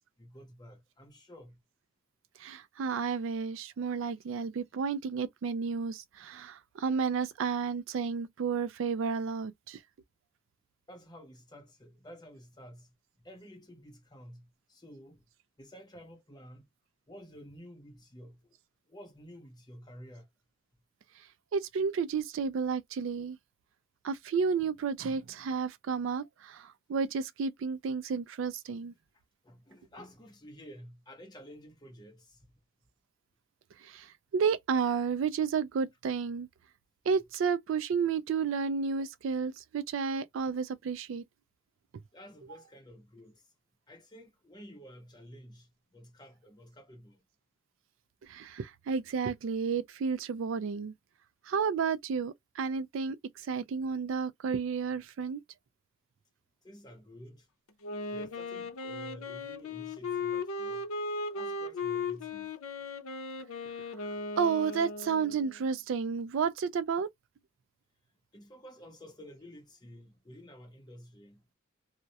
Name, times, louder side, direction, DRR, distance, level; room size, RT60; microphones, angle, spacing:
voice 1, 0.2-1.6 10.9-15.2 15.6-16.7 17.1-18.6 18.9-20.3 29.4-32.5 42.1-43.5 43.9-47.2 56.6-57.5 58.1-60.9 61.3-62.6 68.3-71.5, equal, 20° left, 0.8 m, -51 dB
voice 2, 2.4-9.8 21.5-23.4 24.0-28.9 33.8-36.5 37.1-41.2 48.2-50.9 51.4-55.4 64.4-67.1, right 5 dB, 65° right, 0.3 m, -31 dB
Wind instrument woodwind instrument, 57.8-65.6, left 3 dB, 85° left, 0.6 m, -37 dB
2.3 x 2.0 x 2.7 m
head